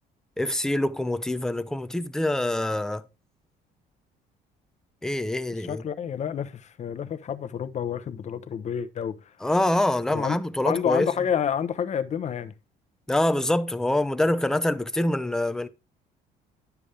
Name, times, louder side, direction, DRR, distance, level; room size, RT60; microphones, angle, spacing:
voice 1, 0.4-3.0 5.0-5.8 9.4-11.1 13.1-15.7, left 1 dB, 5° left, 0.5 m, -25 dB
voice 2, 5.6-9.2 10.1-10.4 10.7-12.5, left 8 dB, 45° left, 0.8 m, -29 dB
10.0 x 7.0 x 3.4 m
cardioid pair, 110°, 17 cm